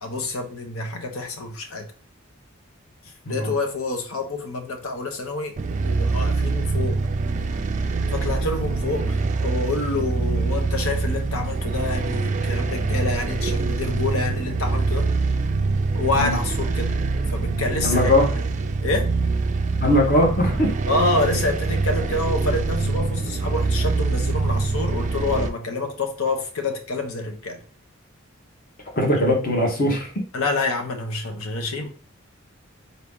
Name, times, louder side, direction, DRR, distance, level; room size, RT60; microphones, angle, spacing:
voice 1, 0.0-1.9 3.3-5.5 5.8-7.0 8.1-15.1 15.9-17.0 17.3-18.1 18.8-19.1 20.9-27.6 30.3-31.9, left 3 dB, 75° left, 0.8 m, -27 dB
sound 1, 5.6-25.5, right 3 dB, 35° right, 0.3 m, -24 dB
voice 2, 17.8-18.3 19.8-20.7 29.0-30.1, left 1 dB, 40° left, 1.0 m, -20 dB
4.0 x 2.8 x 3.6 m
head